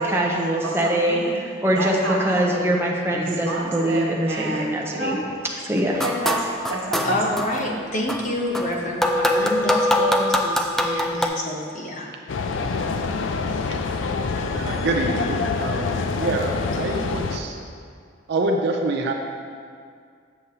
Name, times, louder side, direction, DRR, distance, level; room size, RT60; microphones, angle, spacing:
voice 1, 0.0-1.3 1.6-5.2 5.6-6.0, right 1 dB, 15° right, -2 dB, 0.7 m, -23 dB
voice 2, 0.6-1.4 1.7-2.7 3.1-5.2 6.0-7.1, right 2 dB, 80° right, -4 dB, 1.4 m, -29 dB
sound 1, 5.9-7.6 8.1-11.3, left 1 dB, ahead, 0.3 m, -23 dB
voice 3, 7.0-12.1, left 1 dB, 40° left, -1 dB, 0.9 m, -27 dB
sound 2, 12.3-17.4, left 4 dB, 75° left, 0.4 m, -26 dB
voice 4, 14.5-17.6 18.3-19.1, right 2 dB, 60° right, 2 dB, 0.5 m, -26 dB
7.9 x 6.6 x 2.8 m, 2.2 s
head